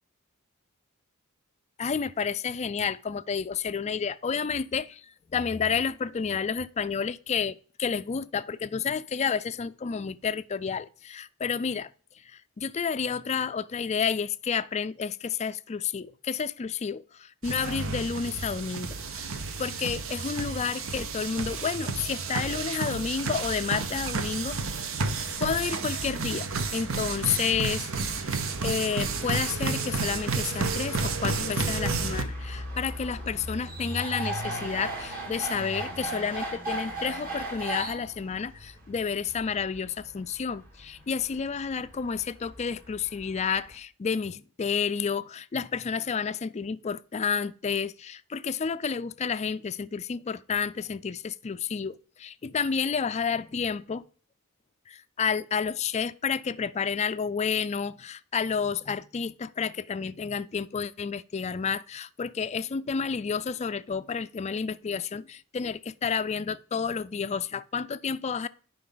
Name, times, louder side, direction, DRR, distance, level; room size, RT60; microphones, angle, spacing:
voice 1, 1.8-5.0 5.3-11.9 12.6-19.3 19.6-24.6 25.4-54.0 54.9-68.5, left 6 dB, 30° left, 0.4 m, -30 dB
sound 1, 17.4-32.2, right 4 dB, 65° right, 0.9 m, -31 dB
sound 2, 29.7-43.7, right 1 dB, 40° right, 3.0 m, -38 dB
11.0 x 5.3 x 3.9 m
head